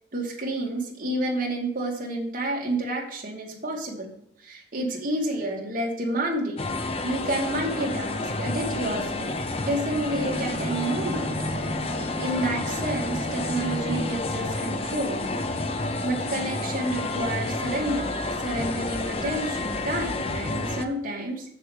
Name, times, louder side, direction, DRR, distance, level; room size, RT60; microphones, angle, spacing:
voice 1, 0.1-4.1 4.4-6.7 7.0-9.4 9.7-11.2 12.2-15.3 16.0-21.4, right 1 dB, 50° right, -3 dB, 2.5 m, -29 dB
sound 1, 6.6-20.8, left 2 dB, 35° left, 0.8 m, -30 dB
Bowed string instrument, 10.0-14.4, equal, 30° right, 2.9 m, -33 dB
7.0 x 6.7 x 6.5 m, 0.73 s
head